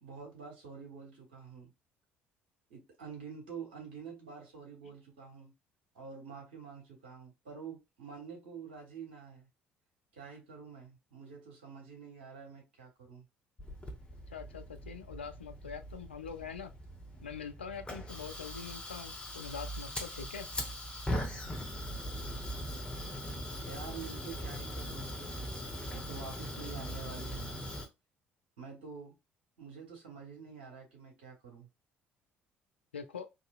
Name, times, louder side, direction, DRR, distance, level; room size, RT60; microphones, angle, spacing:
voice 1, 0.0-1.7 2.7-5.5 5.9-9.5 10.1-13.3 23.6-25.5 25.9-27.6 28.6-29.1 29.6-31.7, right 6 dB, 70° right, 1.3 m, -47 dB
Fire, 13.6-27.9, equal, 15° left, 1.1 m, -40 dB
voice 2, 14.3-16.7 17.2-20.5 32.9-33.3, left 6 dB, 80° left, 0.4 m, -44 dB
3.6 x 2.7 x 2.4 m
figure-of-eight pair, 55°, 6 cm